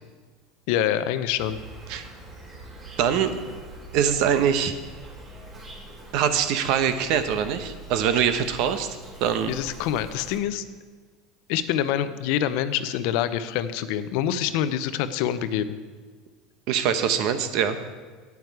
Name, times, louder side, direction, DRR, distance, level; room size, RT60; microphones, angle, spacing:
voice 1, 0.7-1.6 9.5-10.6 11.5-15.8, left 10 dB, 70° left, 12 dB, 0.6 m, -26 dB
Insect, 1.4-10.4, right 2 dB, 30° right, 2.4 m, -44 dB
voice 2, 3.0-3.3 3.9-4.7 6.1-8.9 9.2-9.5 16.7-17.8, right 8 dB, 60° right, 10 dB, 0.9 m, -23 dB
9.6 x 9.3 x 4.7 m, 1.5 s
supercardioid pair, 135°, 0 cm